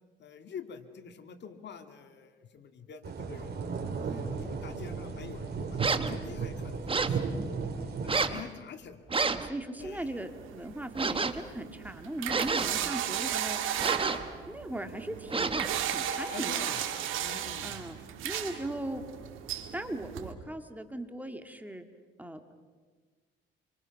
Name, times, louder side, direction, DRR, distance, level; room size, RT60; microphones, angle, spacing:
voice 1, 0.2-7.5 8.0-9.0 9.8-10.1 12.7-13.0 14.1-14.5 16.1-16.8 17.2-17.8, left 7 dB, 60° left, 7 dB, 2.0 m, -47 dB
sound 1, 3.0-8.2, right 5 dB, 55° right, 4.0 m, -35 dB
sound 2, 5.8-6.2 6.9-7.2 8.1-8.4 9.1-9.5 11.0-11.4 12.3-12.9 13.8-14.3 15.3-15.8, right 4 dB, 25° right, 1.4 m, -30 dB
voice 2, 9.3-13.9 14.5-16.9 17.6-18.0 18.2-19.0 19.7-21.8 22.2-22.4, right 1 dB, 10° right, 7 dB, 2.0 m, -39 dB
sound 3, 9.8-20.3, right 10 dB, 90° right, 2.1 m, -35 dB
27.5 x 24.5 x 5.9 m, 1.5 s
cardioid pair, 90°, 20 cm